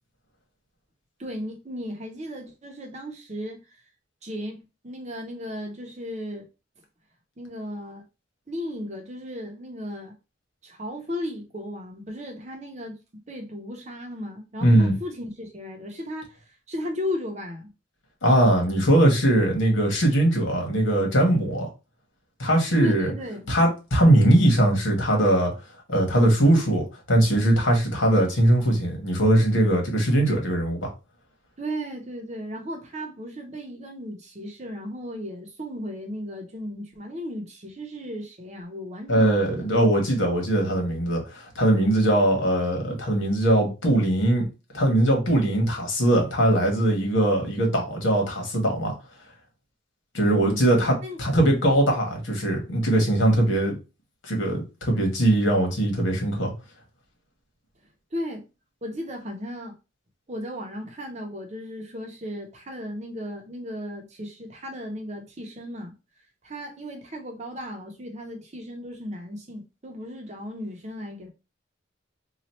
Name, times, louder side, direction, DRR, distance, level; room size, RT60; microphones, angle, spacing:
voice 1, 1.2-3.8 4.2-6.5 7.4-8.0 8.5-10.1 10.6-13.0 13.3-16.4 16.7-17.7 22.8-23.5 31.6-39.7 50.1-50.6 51.0-51.2 58.1-58.4 58.8-59.8 60.3-65.9 66.4-71.3, equal, 35° right, 0.8 m, -35 dB
voice 2, 14.6-14.9 18.2-21.7 22.4-23.1 23.5-25.5 25.9-26.8 27.1-30.9 39.1-44.5 44.7-49.0 50.1-53.8 54.2-56.5, right 1 dB, 80° left, 1.4 m, -21 dB
3.1 x 2.4 x 4.2 m
head